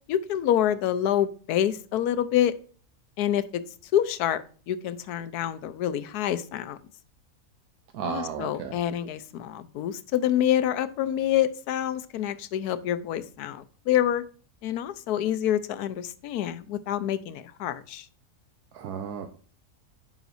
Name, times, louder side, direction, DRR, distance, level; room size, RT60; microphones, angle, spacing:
voice 1, 0.1-2.5 3.2-3.6 3.9-6.8 8.0-14.2 14.6-18.1, left 11 dB, 85° left, 14 dB, 1.2 m, -27 dB
voice 2, 7.9-8.7 18.7-19.3, right 8 dB, 80° right, 6 dB, 1.2 m, -34 dB
9.1 x 6.0 x 2.6 m, 0.41 s
omnidirectional pair, 1.6 m